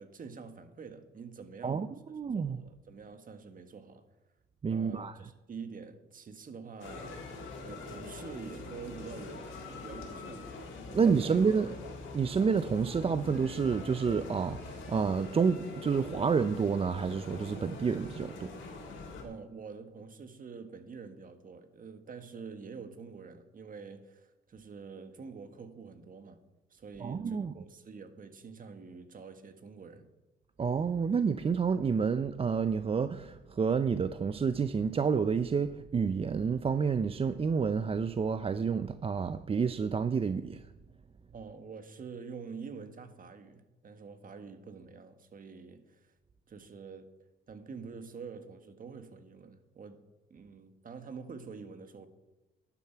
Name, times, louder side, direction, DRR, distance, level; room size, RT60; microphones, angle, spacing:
voice 1, 0.0-1.9 2.3-4.1 4.7-7.3 7.6-10.6 10.9-11.4 19.2-26.4 26.7-30.1 41.3-46.1 46.5-47.1 47.5-52.1, right 5 dB, 45° right, 1.4 m, -47 dB
voice 2, 1.6-2.6 4.6-5.1 10.9-11.7 12.1-18.5 27.0-27.5 30.6-40.6, right 5 dB, 30° right, 0.5 m, -29 dB
sound 1, 6.8-19.2, left 3 dB, 75° left, 3.6 m, -44 dB
12.0 x 11.0 x 4.5 m
cardioid pair, 90°, 20 cm